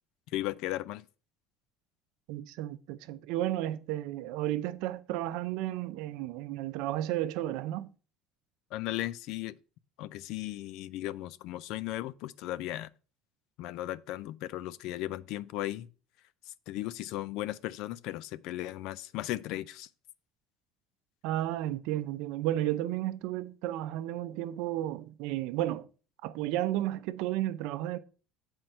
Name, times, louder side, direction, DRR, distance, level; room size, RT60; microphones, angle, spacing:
voice 1, 0.3-1.0 8.7-9.6 10.0-12.9 13.6-15.9 16.7-19.9, left 15 dB, 65° left, 0.4 m, -36 dB
voice 2, 2.3-7.9 21.2-25.9 26.2-28.0, right 14 dB, 75° right, 0.5 m, -33 dB
7.7 x 4.5 x 5.4 m
cardioid pair, 135°, 0 cm